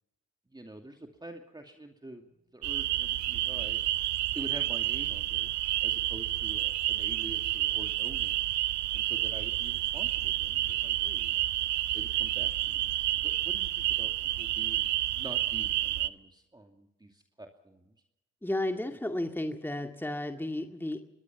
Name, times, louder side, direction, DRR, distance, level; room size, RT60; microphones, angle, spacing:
voice 1, 0.5-3.8 4.3-5.5 5.8-8.5 8.9-11.4 11.9-12.9 13.2-14.1 14.4-17.9, right 1 dB, 15° right, 3 dB, 2.6 m, -47 dB
sound 1, 2.6-16.1, right 14 dB, 75° right, 0.9 m, -30 dB
voice 2, 18.4-21.0, left 1 dB, 5° left, 4 dB, 2.1 m, -33 dB
25.0 x 20.5 x 6.0 m, 0.91 s
supercardioid pair, 55°, 29 cm